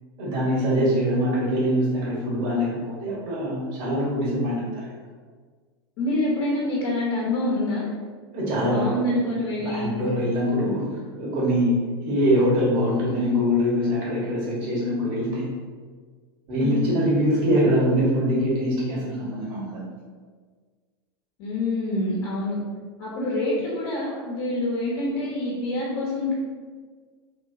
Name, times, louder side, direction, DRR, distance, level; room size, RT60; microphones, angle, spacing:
voice 1, 0.2-4.9 8.3-8.9 9.7-11.8 12.0-15.5 16.5-19.8, equal, 55° right, -5 dB, 1.3 m, -23 dB
voice 2, 6.0-7.9 8.6-9.9 16.6-16.9 21.4-22.6 23.0-26.3, left 1 dB, 60° left, -5 dB, 1.0 m, -26 dB
3.2 x 2.9 x 2.6 m, 1.5 s
hypercardioid pair, 95°, 14 cm